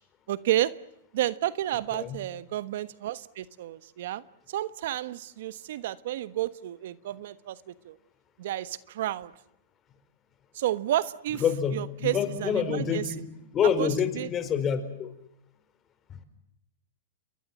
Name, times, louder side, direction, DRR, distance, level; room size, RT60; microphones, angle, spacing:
voice 1, 0.3-0.7 1.1-8.0 8.4-9.3 10.5-11.4 11.7-13.0 13.8-14.3, right 13 dB, 60° right, 15 dB, 1.3 m, -31 dB
voice 2, 11.4-13.2 13.5-15.1 16.1-16.2, left 7 dB, 25° left, 11 dB, 4.8 m, -27 dB
29.5 x 23.0 x 7.5 m, 0.80 s
hypercardioid pair, 145°, 0 cm